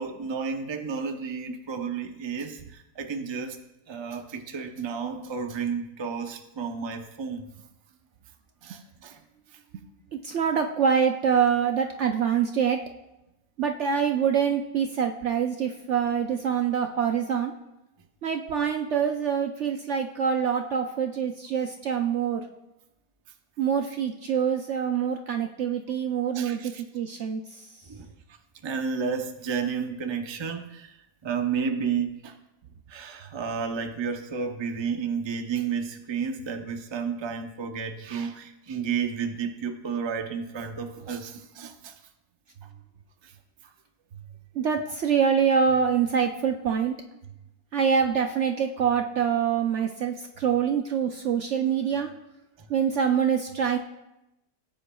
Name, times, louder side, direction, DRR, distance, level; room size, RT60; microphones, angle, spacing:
voice 1, 0.0-3.6 3.9-7.5 8.6-9.2 9.5-9.6 26.3-26.8 27.9-28.1 28.6-31.0 31.2-32.4 32.9-41.9 43.2-43.3 52.6-52.7, right 6 dB, 25° right, 5 dB, 0.6 m, -32 dB
voice 2, 10.1-12.8 13.6-17.5 18.2-22.4 23.6-27.4 44.5-46.9 47.7-52.1 52.7-53.8, right 7 dB, 60° right, 4 dB, 0.8 m, -25 dB
18.5 x 9.8 x 2.3 m, 0.90 s
omnidirectional pair, 1.7 m